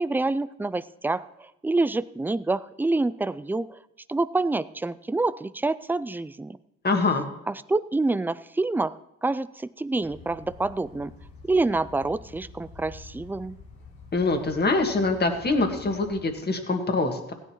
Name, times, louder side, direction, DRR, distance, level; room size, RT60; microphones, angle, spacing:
voice 1, 0.0-3.8 4.1-6.6 7.5-9.0 9.2-11.1 11.5-13.6, right 2 dB, 5° right, 16 dB, 0.3 m, -27 dB
voice 2, 6.8-7.2 14.1-17.3, left 3 dB, 35° left, 5 dB, 1.8 m, -24 dB
sound 1, 10.0-16.4, left 4 dB, 85° left, 4.5 m, -47 dB
16.0 x 10.5 x 3.0 m, 0.91 s
cardioid pair, 90°, 30 cm